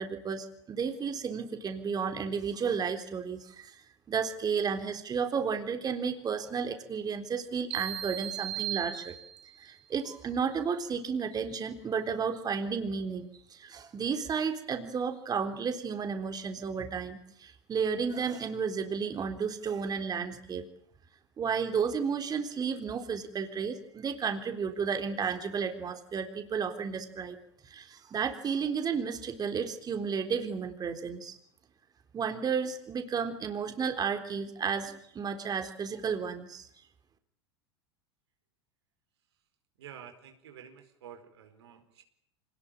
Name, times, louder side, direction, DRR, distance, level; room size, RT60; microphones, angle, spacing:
voice 1, 0.0-9.2 9.6-20.7 21.4-27.4 27.6-31.4 32.1-36.7, right 6 dB, 30° right, 7 dB, 3.7 m, -32 dB
sound 1, 7.7-9.6, right 12 dB, 45° right, 7.1 m, -37 dB
voice 2, 39.8-42.0, right 8 dB, 75° right, 6 dB, 4.6 m, -50 dB
26.0 x 19.5 x 9.0 m, 0.69 s
hypercardioid pair, 90°, 14 cm